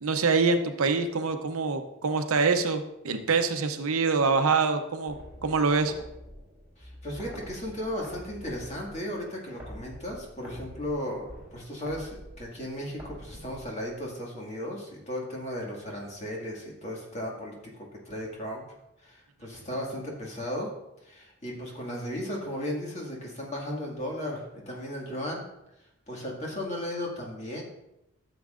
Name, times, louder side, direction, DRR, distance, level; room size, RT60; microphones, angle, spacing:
voice 1, 0.0-5.9, right 4 dB, 80° right, 7 dB, 0.7 m, -25 dB
sound 1, 5.1-14.1, equal, 10° right, 3.4 m, -47 dB
voice 2, 6.8-17.5 18.0-18.6 19.0-20.7 21.0-25.4 26.1-27.6, left 1 dB, 30° left, -2 dB, 1.9 m, -35 dB
13.0 x 7.3 x 2.5 m, 0.87 s
head